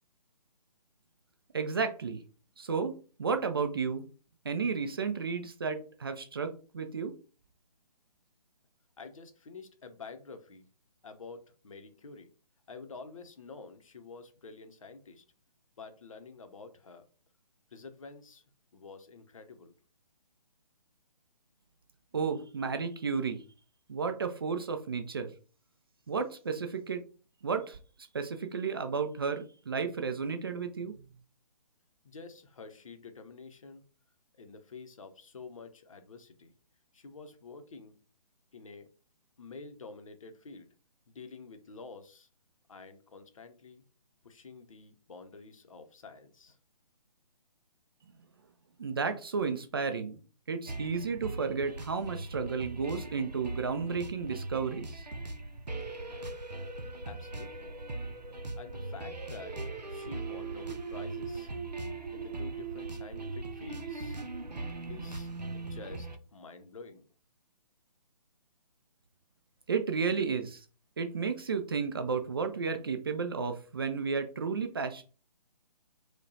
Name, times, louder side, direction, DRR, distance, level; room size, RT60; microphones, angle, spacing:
voice 1, 1.5-2.2 2.6-2.9 3.2-4.1 4.4-7.1 22.1-23.4 23.9-25.3 26.1-27.0 27.4-27.8 28.1-30.9 48.8-50.1 50.5-55.0 69.7-70.6 71.0-75.0, right 5 dB, 35° right, 7 dB, 0.4 m, -32 dB
voice 2, 9.0-10.7 11.0-12.3 12.7-15.2 15.8-17.0 17.7-18.4 18.7-19.7 32.0-33.8 34.4-36.5 36.9-37.9 38.5-38.9 39.4-40.7 41.1-42.3 42.7-43.8 44.2-46.6 57.1-57.7 58.6-59.6 59.9-61.5 62.1-64.2 64.9-67.0, left 4 dB, 55° left, 7 dB, 0.7 m, -48 dB
sound 1, 50.7-66.2, right 3 dB, 90° right, 0.6 m, -40 dB
4.7 x 2.2 x 2.7 m, 0.36 s
figure-of-eight pair, 140°, 21 cm